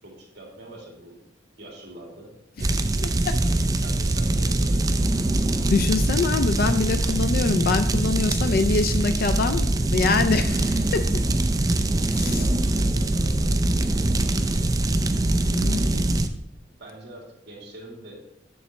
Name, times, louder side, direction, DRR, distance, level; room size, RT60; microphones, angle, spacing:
voice 1, 0.0-1.2 1.6-2.3 3.4-5.6 12.2-14.8 15.8-16.1 16.8-18.2, right 1 dB, 65° right, -1 dB, 2.4 m, -44 dB
sound 1, 2.6-16.3, right 2 dB, 20° right, 0.4 m, -23 dB
voice 2, 3.0-3.3 5.7-11.2 15.5-15.8, left 4 dB, 55° left, 9 dB, 0.4 m, -24 dB
7.0 x 7.0 x 3.2 m, 0.80 s
head